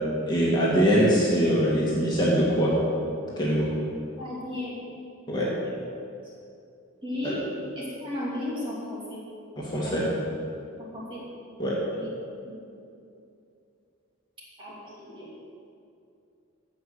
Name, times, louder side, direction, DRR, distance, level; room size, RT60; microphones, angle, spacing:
voice 1, 0.3-2.7 3.4-3.7 5.3-5.5 7.2-7.3 9.6-10.0 11.6-11.8, equal, 20° left, -6 dB, 2.1 m, -23 dB
voice 2, 4.2-4.9 5.4-5.7 7.0-7.4 7.8-9.2 9.8-10.1 10.9-11.2 11.9-12.1 12.4-12.6 14.6-15.3, left 1 dB, 25° right, -7 dB, 2.7 m, -35 dB
15.5 x 5.8 x 6.7 m, 2.5 s
head